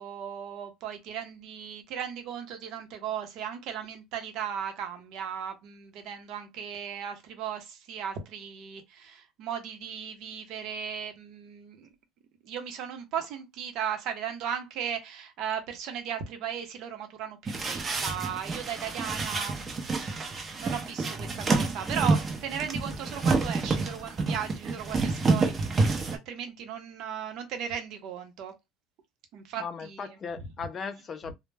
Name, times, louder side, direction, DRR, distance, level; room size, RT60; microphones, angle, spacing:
voice 1, 0.0-11.9 12.4-26.0 26.3-28.5 29.3-30.2, right 8 dB, 65° right, 0.7 m, -36 dB
sound 1, 17.5-26.2, right 3 dB, 30° right, 0.6 m, -28 dB
voice 2, 29.6-31.3, left 5 dB, 35° left, 0.4 m, -37 dB
2.1 x 2.1 x 3.3 m
supercardioid pair, 115°, 0 cm